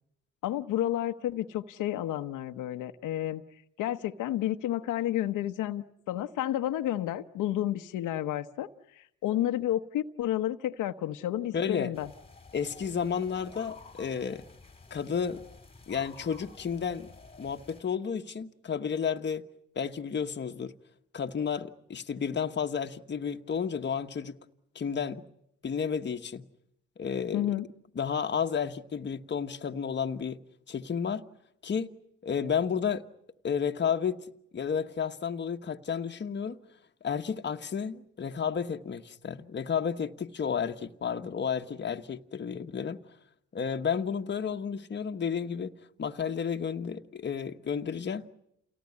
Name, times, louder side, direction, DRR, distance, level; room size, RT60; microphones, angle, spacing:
voice 1, 0.4-3.4 3.8-12.1 27.3-27.7, left 12 dB, 85° left, 1.0 m, -31 dB
voice 2, 11.5-11.9 12.5-14.4 14.9-15.4 15.9-17.1 17.4-19.4 19.7-20.7 21.1-24.4 24.7-25.2 25.6-26.4 27.0-27.5 28.0-30.4 30.7-31.2 31.6-31.9 32.2-33.0 33.4-34.2 34.5-36.6 37.0-43.0 43.5-45.7 46.0-48.3, left 7 dB, 35° left, 1.3 m, -32 dB
sound 1, 11.9-17.8, left 3 dB, 20° left, 2.2 m, -51 dB
29.0 x 18.0 x 9.7 m
cardioid pair, 90°, 30 cm